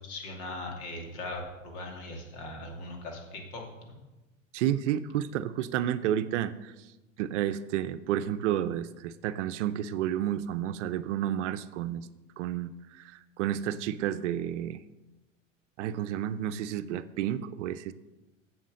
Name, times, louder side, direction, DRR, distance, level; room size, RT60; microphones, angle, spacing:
voice 1, 0.0-4.0, left 2 dB, 60° left, 1 dB, 2.7 m, -40 dB
voice 2, 4.5-6.7 7.2-12.1 12.4-14.8 15.8-17.9, right 11 dB, 70° right, 12 dB, 0.6 m, -31 dB
7.9 x 7.4 x 6.3 m, 1.1 s
hypercardioid pair, 105°, 38 cm